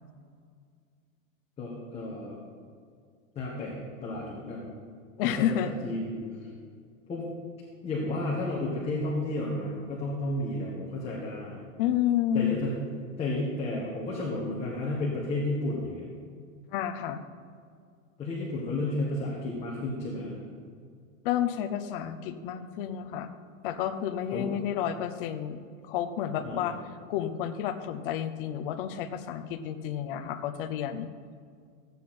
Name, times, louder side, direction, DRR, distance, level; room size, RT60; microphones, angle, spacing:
voice 1, 1.6-2.3 3.3-3.7 4.0-4.7 5.2-6.2 7.1-7.3 7.8-11.6 12.3-12.8 13.2-16.0 18.2-20.3 24.3-24.5 26.4-26.7, left 2 dB, 15° left, -5 dB, 1.6 m, -32 dB
voice 2, 5.2-5.7 11.8-12.6 16.7-17.2 21.2-23.3 23.6-25.6 25.8-26.8 27.1-31.1, left 10 dB, 40° left, 7 dB, 0.8 m, -30 dB
14.5 x 8.3 x 4.3 m, 2.1 s
supercardioid pair, 160°, 40 cm